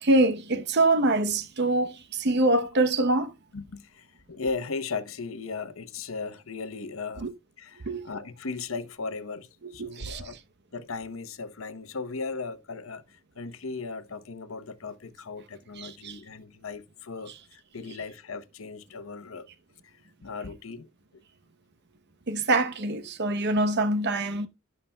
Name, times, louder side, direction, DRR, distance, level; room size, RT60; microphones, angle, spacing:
voice 1, 0.0-3.3 7.2-7.3 7.9-8.0 9.8-10.2 15.8-16.2 22.3-24.5, right 2 dB, 55° right, 0.9 m, -24 dB
voice 2, 3.5-7.3 7.6-10.4 10.7-19.5 19.8-20.9, left 4 dB, 80° left, 0.9 m, -37 dB
17.0 x 5.7 x 2.2 m
head